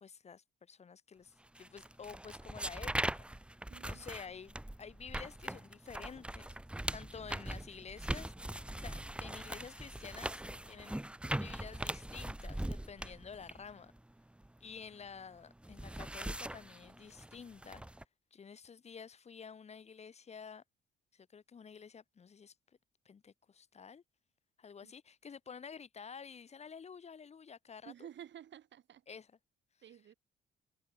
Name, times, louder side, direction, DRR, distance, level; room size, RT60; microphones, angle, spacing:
voice 1, 0.0-3.2 3.8-6.6 6.9-11.0 11.3-13.9 14.6-17.9 18.3-20.6 21.1-22.5 23.0-24.0 24.6-28.1 29.1-29.3, left 6 dB, 35° left, 0.8 m, -50 dB
sound 1, 1.5-15.0 15.4-18.0, right 1 dB, 5° right, 0.9 m, -41 dB
voice 2, 3.7-4.1 24.8-24.9 27.8-29.1 29.8-30.1, right 10 dB, 65° right, 4.3 m, -52 dB
cardioid pair, 90°, 20 cm